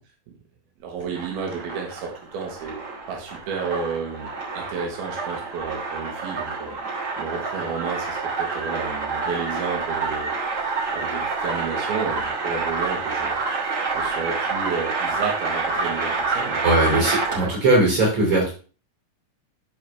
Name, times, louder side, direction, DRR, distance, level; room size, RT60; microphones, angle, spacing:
voice 1, 0.8-2.8 3.1-4.3 4.5-6.8 7.2-10.3 10.6-16.7 16.9-17.5, right 5 dB, 85° right, 0 dB, 3.4 m, -32 dB
sound 1, 1.0-17.6, right 4 dB, 30° right, 1.8 m, -28 dB
voice 2, 16.6-18.5, right 2 dB, 50° right, -4 dB, 4.3 m, -19 dB
12.5 x 4.5 x 3.4 m, 0.36 s
omnidirectional pair, 4.2 m